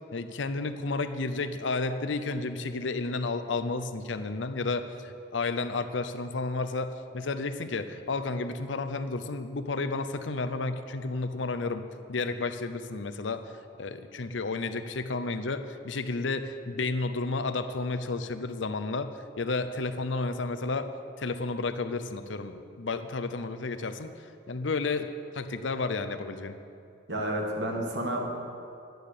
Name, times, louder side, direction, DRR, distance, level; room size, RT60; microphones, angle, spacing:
voice 1, 0.1-11.8 12.1-13.5 13.8-19.1 19.4-20.9 21.2-24.1 24.5-26.5, left 3 dB, 85° left, 9 dB, 0.7 m, -32 dB
voice 2, 27.1-28.5, right 1 dB, 65° right, 1 dB, 2.0 m, -31 dB
11.5 x 9.3 x 6.7 m, 2.6 s
head